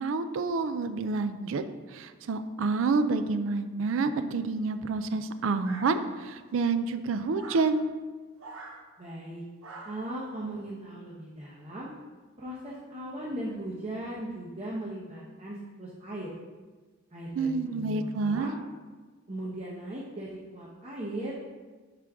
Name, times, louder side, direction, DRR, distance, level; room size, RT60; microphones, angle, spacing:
voice 1, 0.0-1.6 1.9-7.9 17.4-18.5, right 4 dB, 70° right, 11 dB, 0.4 m, -28 dB
sound 1, 5.6-6.4 7.3-7.7 8.4-8.8 9.6-10.1, right 3 dB, 85° right, 0.8 m, -45 dB
voice 2, 9.0-9.4 9.8-11.9 12.4-16.3 17.1-18.5 19.3-21.4, right 1 dB, 30° right, -5 dB, 0.8 m, -38 dB
6.0 x 5.0 x 3.5 m, 1.3 s
head